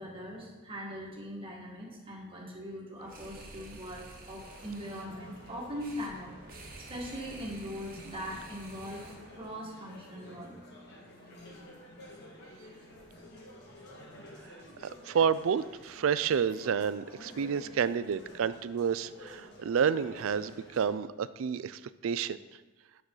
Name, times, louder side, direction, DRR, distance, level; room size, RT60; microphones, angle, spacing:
voice 1, 0.0-6.4 6.9-9.0 9.3-10.5, equal, 25° right, -3 dB, 1.8 m, -41 dB
sound 1, 3.0-9.5, right 2 dB, 45° right, 1.2 m, -50 dB
sound 2, 4.3-20.9, left 1 dB, 55° left, 1.7 m, -51 dB
voice 2, 14.8-22.4, right 7 dB, 75° right, 16 dB, 0.4 m, -30 dB
9.6 x 6.4 x 3.9 m, 1.2 s
head